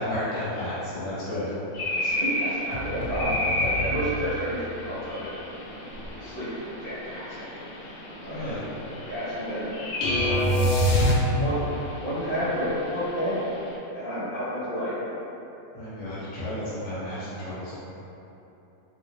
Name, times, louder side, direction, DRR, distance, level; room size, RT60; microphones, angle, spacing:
voice 1, 0.0-1.4 8.3-8.6 15.7-17.8, left 1 dB, 30° left, -14 dB, 0.9 m, -32 dB
sound 1, 1.7-13.8, left 1 dB, 65° left, 0.8 m, -33 dB
voice 2, 2.0-5.3 6.1-7.5 8.2-8.5 9.1-9.7 10.2-10.6 11.3-13.4 13.9-15.0, equal, 50° left, -14 dB, 2.0 m, -31 dB
sound 2, 2.7-5.2, left 2 dB, 85° right, 1.3 m, -35 dB
sound 3, 10.0-11.7, equal, 85° left, 1.2 m, -22 dB
4.7 x 2.1 x 3.2 m, 2.9 s
omnidirectional pair, 1.7 m